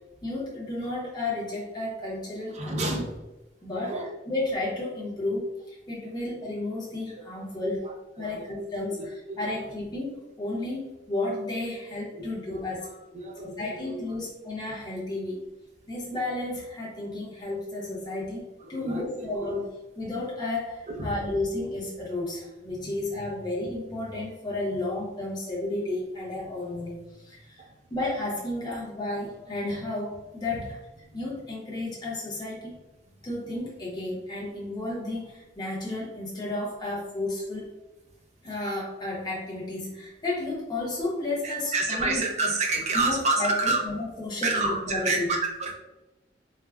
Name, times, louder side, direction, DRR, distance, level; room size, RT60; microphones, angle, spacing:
voice 1, 0.2-3.0 3.6-7.8 8.2-12.9 13.4-15.5 15.9-30.8 31.1-32.8 33.2-37.7 38.4-42.5 42.9-45.3, left 2 dB, 25° left, -6 dB, 0.7 m, -32 dB
voice 2, 2.5-3.1 3.8-4.1 8.2-8.7 9.0-9.4 12.5-12.6 13.1-14.0 18.7-19.3 20.9-21.1 22.8-22.9 41.4-43.8 44.4-45.7, right 3 dB, 40° right, 0 dB, 0.5 m, -28 dB
3.3 x 2.1 x 2.2 m, 1.0 s
head